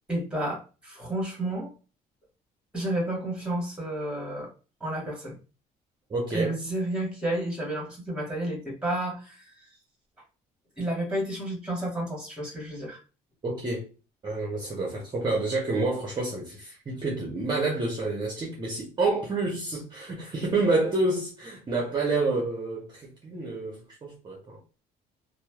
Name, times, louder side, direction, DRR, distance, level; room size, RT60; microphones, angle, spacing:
voice 1, 0.1-1.7 2.7-4.5 4.8-5.4 6.3-9.4 10.8-13.0, right 1 dB, 5° right, 1.2 m, -31 dB
voice 2, 6.1-6.6 13.4-13.9 14.2-24.6, right 3 dB, 25° right, 0.7 m, -28 dB
3.0 x 2.0 x 2.2 m
cardioid pair, 110°, 17 cm